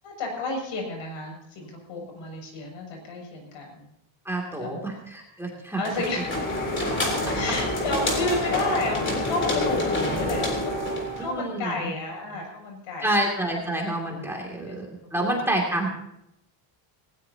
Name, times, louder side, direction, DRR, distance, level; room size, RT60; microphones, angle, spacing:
voice 1, 0.0-3.9 4.6-4.8 5.8-6.3 7.3-10.8 11.2-13.1 14.7-14.8 15.2-15.5, left 2 dB, 65° left, 1 dB, 7.1 m, -31 dB
voice 2, 4.2-5.8 6.2-6.3 11.2-11.9 13.0-15.9, right 1 dB, 5° right, -1 dB, 2.6 m, -28 dB
sound 1, 5.8-11.3, left 1 dB, 25° left, 3.7 m, -27 dB
19.0 x 18.5 x 2.9 m, 0.81 s
cardioid pair, 180°, 49 cm